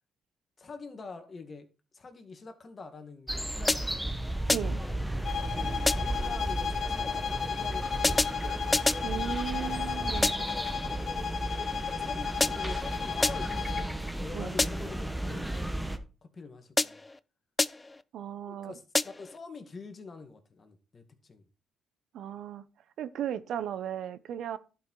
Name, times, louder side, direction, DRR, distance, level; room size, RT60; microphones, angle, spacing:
voice 1, 0.6-1.7 1.9-4.3 5.4-8.3 11.1-17.0 18.5-21.4, left 4 dB, 40° left, 2.1 m, -46 dB
sound 1, 3.3-16.0, right 1 dB, 5° right, 1.2 m, -34 dB
sound 2, 3.7-4.1 4.5-4.9 5.9-6.3 8.0-9.1 10.2-10.6 12.4-12.8 13.2-13.6 14.6-15.0 16.8-17.2 17.6-18.0 18.9-19.4, left 2 dB, 20° left, 0.5 m, -29 dB
sound 3, 5.2-13.9, left 7 dB, 55° left, 1.7 m, -34 dB
voice 2, 9.0-10.5 14.3-14.6 18.1-18.8 22.1-22.7 23.0-24.6, right 9 dB, 75° right, 0.8 m, -36 dB
11.5 x 5.8 x 4.7 m
cardioid pair, 90°, 0 cm